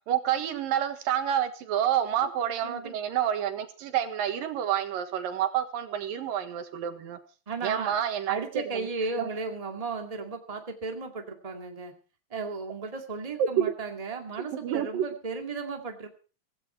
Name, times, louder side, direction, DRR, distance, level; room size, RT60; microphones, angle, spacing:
voice 1, 0.1-7.2 7.6-8.9 9.2-9.3 13.4-13.7 14.4-15.0, right 10 dB, 75° right, 8 dB, 3.2 m, -28 dB
voice 2, 2.6-3.0 7.4-7.9 8.3-11.9 12.3-16.1, right 4 dB, 15° right, 4 dB, 1.5 m, -35 dB
16.5 x 16.0 x 4.4 m, 0.36 s
omnidirectional pair, 4.1 m